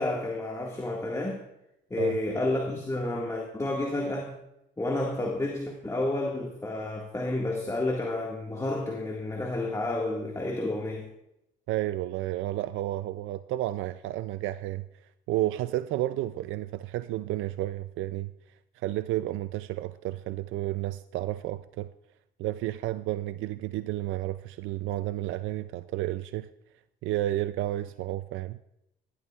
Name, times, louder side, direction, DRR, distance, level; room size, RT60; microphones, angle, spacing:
voice 1, 0.0-1.4 1.9-4.4 4.8-11.1, left 2 dB, 15° left, -1 dB, 1.8 m, -30 dB
voice 2, 11.7-14.8 15.3-18.3 18.8-21.9 22.4-26.5 27.0-28.6, right 15 dB, 85° right, 13 dB, 0.4 m, -31 dB
17.5 x 12.0 x 2.4 m, 0.85 s
cardioid pair, 90°, 20 cm